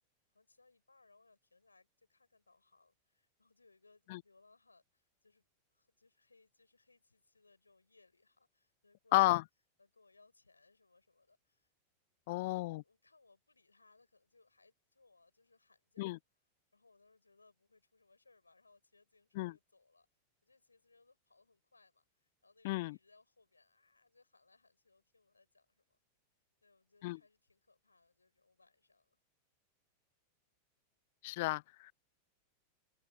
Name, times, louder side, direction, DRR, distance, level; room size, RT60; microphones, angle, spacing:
voice 1, 0.3-9.4 9.8-11.7 12.3-16.1 16.7-26.0 26.6-29.2, left 3 dB, 80° left, 6.4 m, -69 dB
voice 2, 9.1-9.4 12.3-12.8 16.0-16.2 19.4-19.5 22.6-23.0 27.0-27.2 31.2-31.9, left 21 dB, 50° left, 0.3 m, -32 dB
figure-of-eight pair, 90°, 0 cm